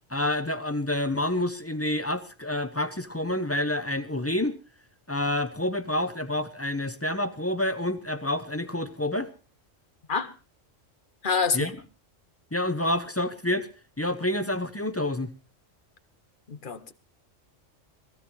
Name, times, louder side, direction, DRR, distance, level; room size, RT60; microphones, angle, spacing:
voice 1, 0.1-4.6 5.1-9.3 11.5-11.7 12.5-13.7 14.0-15.3, left 1 dB, 15° left, 0.6 m, -28 dB
voice 2, 11.2-11.7 16.5-16.9, left 5 dB, 45° left, 1.1 m, -27 dB
21.5 x 14.5 x 3.2 m
omnidirectional pair, 1.3 m